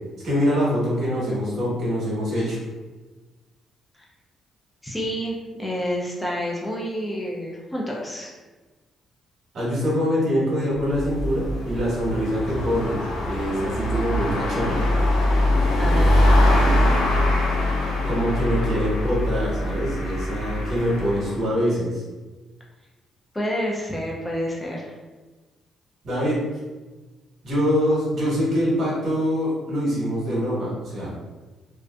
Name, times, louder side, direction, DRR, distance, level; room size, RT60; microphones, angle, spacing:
voice 1, 0.2-2.6 9.5-13.0 13.2-14.9 18.1-22.0 26.0-26.4 27.4-31.2, equal, 60° right, -6 dB, 1.1 m, -24 dB
voice 2, 4.8-8.3 15.8-17.1 23.3-24.9, equal, 10° left, -3 dB, 0.5 m, -29 dB
sound 1, 10.7-21.4, left 1 dB, 90° left, 0.5 m, -22 dB
2.5 x 2.4 x 2.2 m, 1.2 s
cardioid pair, 90°, 0 cm